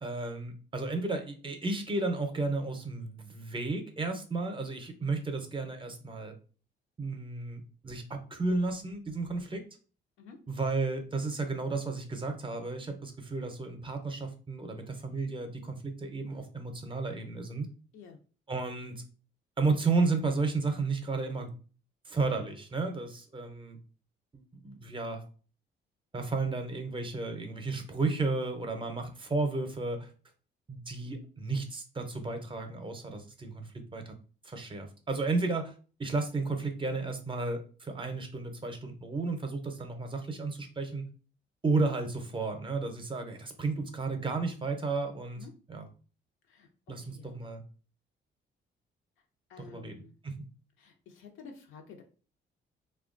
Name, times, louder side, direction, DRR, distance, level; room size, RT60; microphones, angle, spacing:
voice 1, 0.0-6.3 7.0-9.6 10.5-17.7 18.5-19.0 19.6-21.5 22.1-23.8 24.3-25.2 26.1-30.1 30.7-34.1 34.4-35.7 36.0-41.0 41.6-45.9 46.9-47.6 49.6-50.4, right 3 dB, 25° right, 6 dB, 0.6 m, -33 dB
voice 2, 49.5-50.1 50.8-52.0, left 5 dB, 85° left, 3 dB, 0.6 m, -50 dB
2.7 x 2.2 x 2.5 m, 0.37 s
cardioid pair, 90°, 20 cm